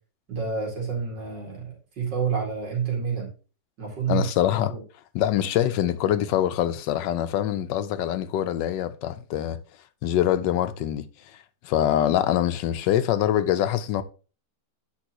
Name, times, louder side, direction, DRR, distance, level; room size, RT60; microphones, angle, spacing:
voice 1, 0.3-3.3 3.8-4.3 4.7-4.8, right 6 dB, 80° right, 2.9 m, -28 dB
voice 2, 4.1-4.7 5.1-9.6 10.0-11.0 11.6-14.0, left 11 dB, 90° left, 1.3 m, -24 dB
8.7 x 5.3 x 2.9 m
omnidirectional pair, 1.9 m